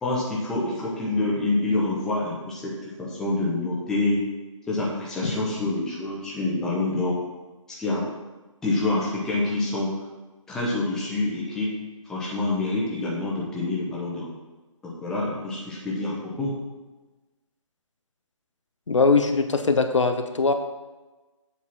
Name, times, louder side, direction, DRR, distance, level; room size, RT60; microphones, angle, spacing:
voice 1, 0.0-4.2 4.7-7.2 7.8-8.0 8.6-9.9 10.5-11.7 12.1-14.3 14.8-16.5, left 2 dB, 5° left, -6 dB, 0.8 m, -27 dB
voice 2, 18.9-20.5, left 4 dB, 65° left, 7 dB, 0.7 m, -21 dB
7.6 x 4.0 x 5.8 m, 1.2 s
figure-of-eight pair, 145°, 17 cm